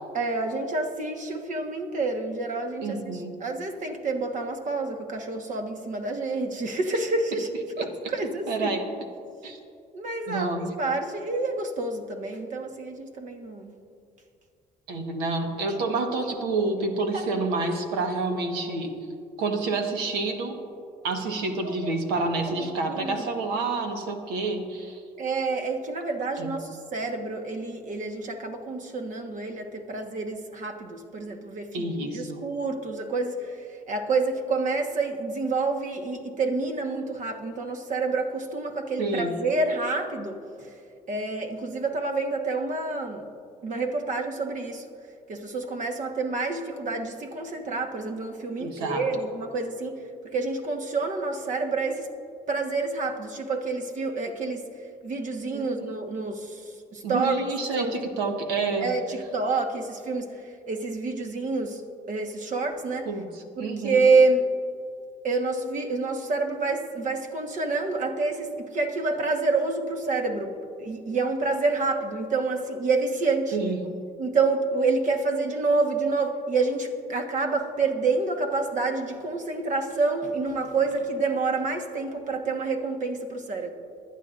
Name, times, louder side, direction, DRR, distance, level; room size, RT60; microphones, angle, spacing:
voice 1, 0.1-7.5 7.8-8.7 9.9-10.5 10.8-13.7 17.0-17.4 21.6-21.9 22.5-22.6 22.9-23.3 25.2-40.7 41.1-43.2 43.6-44.8 45.3-49.9 50.3-52.1 52.5-54.6 55.0-56.6 56.9-57.5 57.8-57.9 58.8-60.3 60.7-61.8 62.1-63.1 63.6-64.4 65.2-73.6 74.2-83.7, right 3 dB, 55° right, 5 dB, 1.4 m, -28 dB
voice 2, 2.8-3.4 7.7-8.1 8.5-8.9 9.4-9.6 10.3-10.7 14.9-18.9 19.4-20.6 21.0-25.0 26.4-26.6 31.7-32.4 39.0-39.4 48.6-49.0 55.5-55.9 57.0-58.9 63.1-64.0 73.5-73.8, right 3 dB, 90° right, 5 dB, 1.3 m, -29 dB
21.0 x 11.0 x 2.6 m, 2.4 s
supercardioid pair, 75°, 16 cm